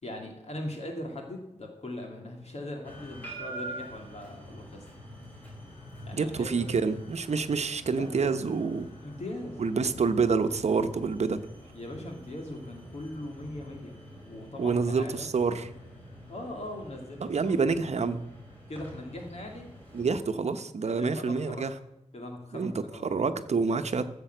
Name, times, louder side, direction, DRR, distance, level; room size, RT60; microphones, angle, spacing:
voice 1, 0.0-4.9 6.0-6.8 7.9-8.4 9.0-10.0 11.7-14.0 14.3-15.3 16.3-17.5 17.9-18.2 18.7-19.7 20.9-21.6 22.1-23.1, left 1 dB, 60° left, 2 dB, 2.3 m, -40 dB
sound 1, 2.8-20.1, right 1 dB, 15° left, 5.7 m, -46 dB
voice 2, 6.1-8.9 9.6-11.4 14.6-15.7 17.2-18.2 19.9-21.7 22.5-22.7 23.0-24.1, right 4 dB, 65° right, 9 dB, 0.9 m, -27 dB
14.5 x 6.9 x 8.0 m, 0.90 s
wide cardioid pair, 120°, 12 cm